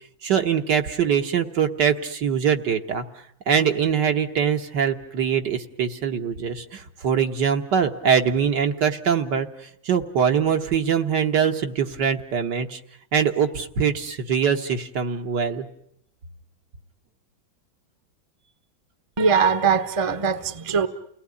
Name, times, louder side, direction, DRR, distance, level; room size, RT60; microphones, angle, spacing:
voice 1, 0.2-3.0 3.5-12.8 13.1-15.7, right 7 dB, 65° right, 1.9 m, -23 dB
voice 2, 19.2-20.9, right 5 dB, 20° right, 1.0 m, -21 dB
29.5 x 18.5 x 9.7 m
omnidirectional pair, 2.1 m